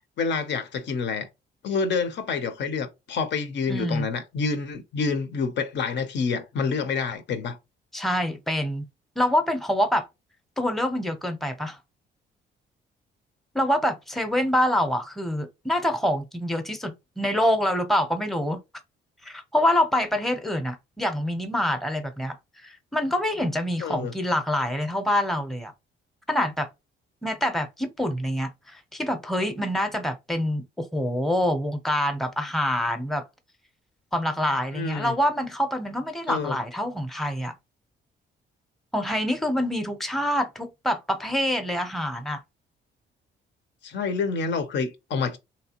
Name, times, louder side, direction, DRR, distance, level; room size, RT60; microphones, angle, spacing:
voice 1, 0.2-1.3 1.6-7.6 23.8-24.1 34.7-35.1 36.3-36.6 43.8-45.4, left 5 dB, 65° left, 0.7 m, -28 dB
voice 2, 3.7-4.1 7.9-8.8 9.2-10.1 10.6-11.8 13.5-18.6 19.2-22.4 22.6-25.7 26.3-26.7 27.2-33.2 34.1-37.5 38.9-42.4, left 1 dB, ahead, 0.7 m, -26 dB
3.2 x 2.8 x 2.9 m
cardioid pair, 90°, 20 cm